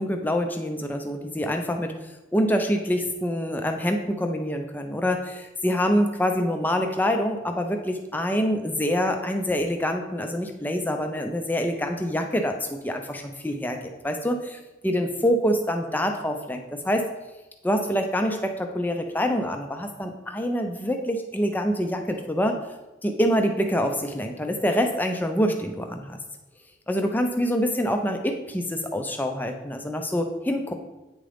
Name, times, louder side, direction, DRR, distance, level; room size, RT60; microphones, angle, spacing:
voice 1, 0.0-1.9 2.3-13.8 14.0-17.0 17.6-22.6 23.0-26.2 26.9-30.7, equal, 10° left, 4 dB, 0.4 m, -26 dB
8.9 x 3.7 x 3.4 m, 1.1 s
head